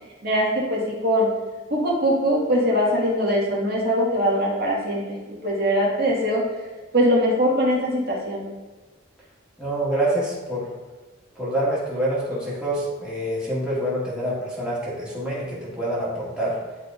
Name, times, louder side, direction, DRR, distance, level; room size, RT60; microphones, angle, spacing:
voice 1, 0.2-1.3 1.7-5.2 5.4-6.4 6.9-8.4, equal, 50° right, -4 dB, 1.8 m, -21 dB
voice 2, 9.6-10.7 11.4-16.6, right 1 dB, 5° right, -8 dB, 1.7 m, -26 dB
11.0 x 4.1 x 2.6 m, 1.3 s
head